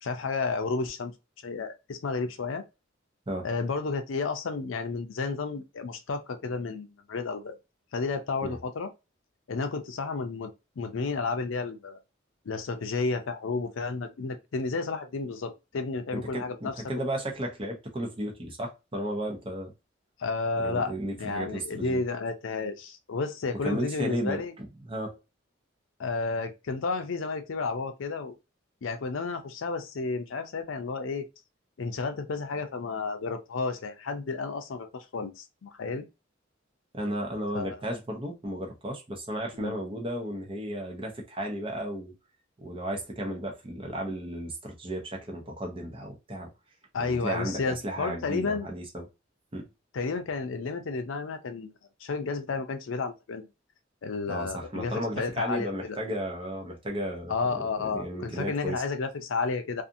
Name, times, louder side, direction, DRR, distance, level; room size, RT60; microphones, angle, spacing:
voice 1, 0.0-1.1 1.4-2.6 3.4-7.6 7.9-8.9 9.5-10.5 10.8-12.0 12.5-16.8 20.2-20.9 21.2-24.5 26.0-28.3 28.8-31.3 31.8-36.0 37.5-38.0 39.6-39.8 46.9-48.7 49.9-51.7 52.0-53.5 54.0-56.0 57.3-59.8, left 4 dB, 85° left, 0.5 m, -32 dB
voice 2, 16.1-19.7 20.6-22.0 23.6-25.2 36.9-42.1 42.6-46.5 47.0-49.1 49.5-49.7 54.3-57.4 57.9-58.8, right 1 dB, 30° right, 0.7 m, -34 dB
2.6 x 2.4 x 2.6 m
head